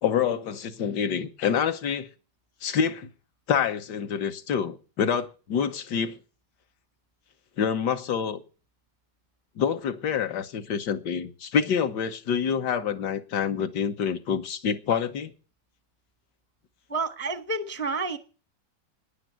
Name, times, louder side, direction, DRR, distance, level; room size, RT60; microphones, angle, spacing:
voice 1, 0.0-2.1 2.6-3.1 3.5-6.2 7.6-8.4 9.6-15.3, left 7 dB, 70° left, 1.6 m, -27 dB
voice 2, 16.9-18.2, right 3 dB, 10° left, 0.5 m, -29 dB
10.0 x 9.0 x 9.2 m
omnidirectional pair, 2.0 m